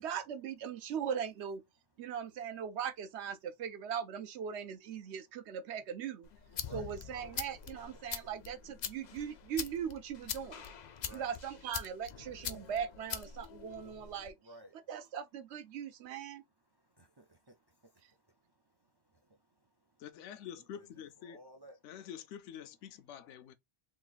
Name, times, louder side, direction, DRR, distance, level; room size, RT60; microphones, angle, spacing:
voice 1, 0.0-1.6 2.0-6.3 6.7-10.6 11.1-14.3 14.7-16.4, right 8 dB, 70° right, 0.8 m, -39 dB
sound 1, 6.2-14.3, left 8 dB, 60° left, 0.4 m, -44 dB
voice 2, 6.5-7.1 10.9-11.3 12.6-12.7 14.4-14.9 16.7-20.0 20.6-21.8, right 1 dB, 35° right, 0.4 m, -58 dB
voice 3, 20.0-21.4 21.8-23.5, left 9 dB, 80° left, 0.9 m, -47 dB
3.1 x 2.5 x 3.8 m
omnidirectional pair, 1.2 m